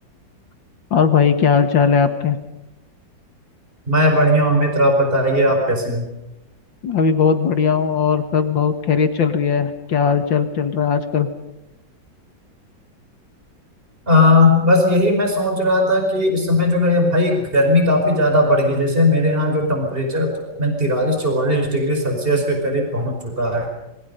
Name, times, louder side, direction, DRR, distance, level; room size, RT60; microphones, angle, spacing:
voice 1, 0.9-2.4 6.8-11.3, left 6 dB, 80° left, 8 dB, 2.5 m, -18 dB
voice 2, 3.9-6.1 14.1-20.3 20.6-23.7, left 1 dB, 30° right, 3 dB, 5.2 m, -17 dB
26.5 x 24.0 x 5.5 m, 0.92 s
omnidirectional pair, 2.0 m